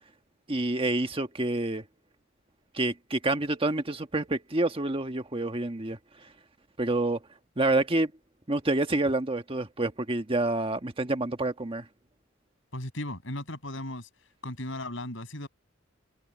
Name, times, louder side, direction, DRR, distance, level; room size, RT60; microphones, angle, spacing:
voice 1, 0.5-1.8 2.7-6.0 6.8-7.2 7.6-8.1 8.5-11.8, right 2 dB, 30° right, 1.4 m, -28 dB
voice 2, 12.7-14.1 14.4-15.5, left 1 dB, 70° left, 6.6 m, -36 dB
head